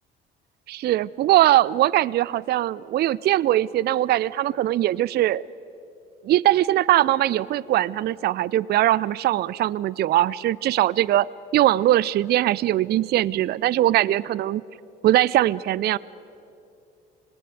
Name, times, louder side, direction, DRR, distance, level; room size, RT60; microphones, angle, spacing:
voice 1, 0.7-5.5 6.2-11.3 11.5-14.6 15.0-16.0, right 14 dB, 35° right, 22 dB, 0.5 m, -21 dB
26.0 x 20.5 x 8.1 m, 2.6 s
figure-of-eight pair, 55°, 29 cm